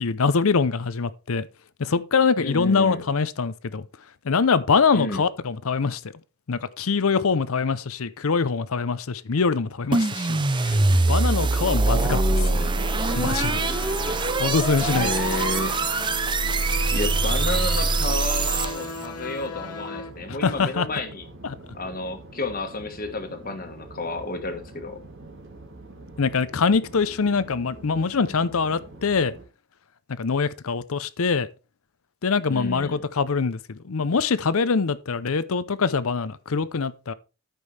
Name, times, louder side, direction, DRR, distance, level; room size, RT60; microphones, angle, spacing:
voice 1, 0.0-1.5 1.8-3.8 4.2-6.0 6.5-12.2 13.1-13.6 14.4-15.1 20.3-20.9 21.4-21.6 26.2-29.3 30.2-31.5 32.2-37.1, left 5 dB, 70° left, 0.6 m, -24 dB
voice 2, 2.4-3.1 4.9-5.3 11.9-12.7 14.9-15.8 16.9-21.3 21.7-25.0 32.5-33.1, left 2 dB, 40° left, 1.4 m, -31 dB
sound 1, 9.9-19.0, right 3 dB, 20° right, 0.4 m, -23 dB
sound 2, 10.6-29.4, right 2 dB, 55° right, 2.1 m, -45 dB
sound 3, 12.7-20.1, left 4 dB, 90° left, 1.2 m, -36 dB
13.5 x 5.4 x 3.3 m
head